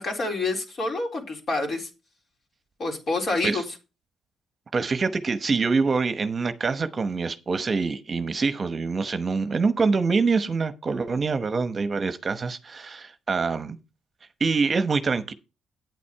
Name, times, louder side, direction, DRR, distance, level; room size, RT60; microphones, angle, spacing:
voice 1, 0.0-1.9 2.8-3.6, left 2 dB, 50° left, 3.8 m, -27 dB
voice 2, 4.7-13.8 14.4-15.3, right 4 dB, 40° right, 0.9 m, -25 dB
9.2 x 8.5 x 4.6 m
cardioid pair, 90°, 0 cm